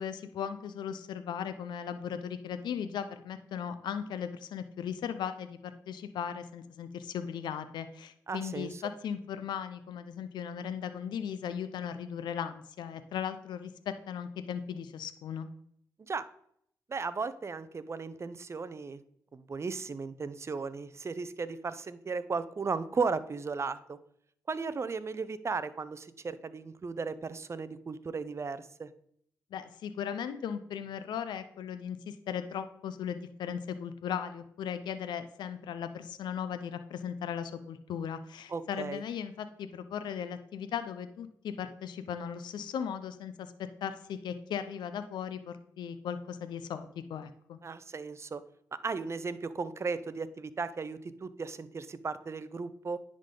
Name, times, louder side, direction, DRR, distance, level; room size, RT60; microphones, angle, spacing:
voice 1, 0.0-15.5 29.5-47.6, left 8 dB, 80° left, 10 dB, 0.5 m, -37 dB
voice 2, 8.3-8.8 16.0-16.3 16.9-19.0 19.3-24.0 24.5-28.9 38.5-39.0 47.6-48.4 48.7-53.0, right 4 dB, 40° right, 14 dB, 0.5 m, -36 dB
10.0 x 3.8 x 3.8 m, 0.68 s
cardioid pair, 60°, 7 cm